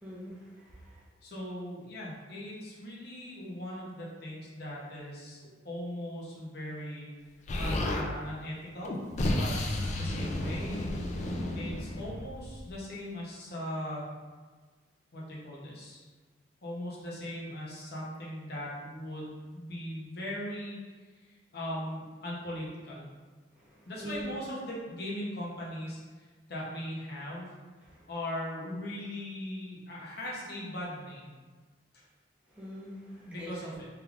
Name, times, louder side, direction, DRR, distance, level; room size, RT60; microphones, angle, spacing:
voice 1, 0.0-1.0 23.7-24.3 27.8-28.0 32.5-33.5, equal, 10° right, -8 dB, 0.7 m, -44 dB
voice 2, 1.2-7.1 7.6-8.9 9.3-14.0 15.1-16.0 16.6-20.8 21.2-23.1 23.9-27.5 28.1-31.3 31.9-32.0 33.3-33.9, left 1 dB, 60° left, -5 dB, 0.8 m, -39 dB
Explosion, 7.5-8.1 8.8-12.7, left 1 dB, 40° left, 0.3 m, -32 dB
3.3 x 3.2 x 2.4 m, 1.4 s
head